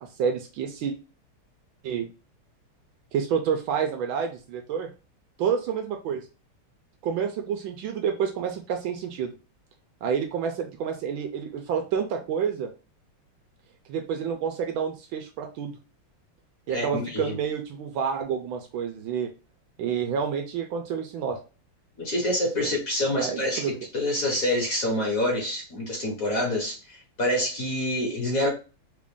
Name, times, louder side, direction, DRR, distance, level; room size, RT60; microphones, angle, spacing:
voice 1, 0.0-0.9 1.8-2.1 3.1-4.9 5.4-6.2 7.0-9.3 10.0-12.7 13.9-15.7 16.7-19.3 19.8-21.4 22.6-22.7 23.1-23.7, right 7 dB, 75° right, 5 dB, 1.3 m, -29 dB
voice 2, 16.7-17.4 22.0-28.5, left 1 dB, 45° left, -2 dB, 1.4 m, -27 dB
3.7 x 2.5 x 3.5 m, 0.33 s
omnidirectional pair, 2.4 m